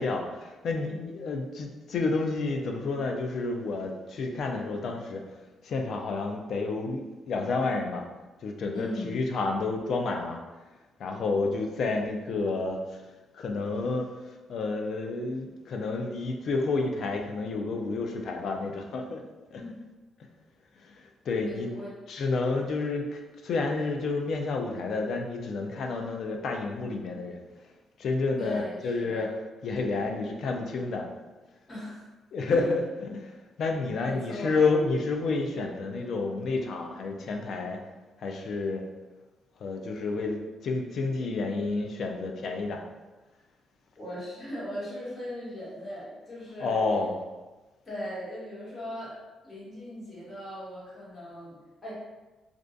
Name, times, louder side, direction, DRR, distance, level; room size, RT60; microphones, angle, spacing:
voice 1, 0.0-5.2 5.6-8.0 8.4-10.4 11.0-13.0 13.3-14.1 14.5-19.2 19.5-19.6 20.8-21.7 22.1-27.4 28.0-29.3 29.6-31.1 32.3-37.8 38.2-38.8 39.6-42.8 46.6-47.2, left 3 dB, 65° left, 2 dB, 0.3 m, -30 dB
voice 2, 8.7-9.3 19.6-19.8 21.4-22.0 28.4-29.3 31.7-32.1 32.5-32.7 34.0-34.6 44.0-46.8 47.8-49.1 49.4-51.9, left 1 dB, 30° left, -9 dB, 1.3 m, -39 dB
2.4 x 2.2 x 2.5 m, 1.2 s
cardioid pair, 90°, 0 cm